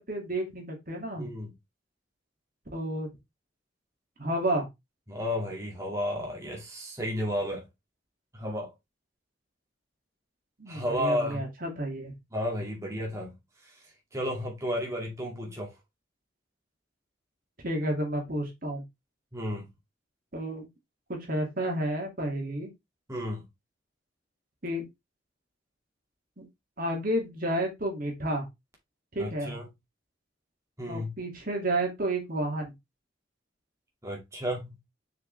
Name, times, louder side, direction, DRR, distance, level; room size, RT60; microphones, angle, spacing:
voice 1, 0.1-1.3 2.7-3.1 4.2-4.7 10.6-12.1 17.6-18.8 20.3-20.7 21.1-22.7 24.6-24.9 26.4-26.5 26.8-28.5 29.1-29.5 30.9-32.7, right 1 dB, 50° right, 2.7 m, -31 dB
voice 2, 1.2-1.5 5.1-7.6 8.3-8.7 10.7-11.5 12.3-13.3 14.1-15.7 19.3-19.7 23.1-23.4 29.2-29.6 30.8-31.1 34.0-34.8, equal, 15° right, 2.4 m, -32 dB
6.7 x 5.6 x 3.5 m
head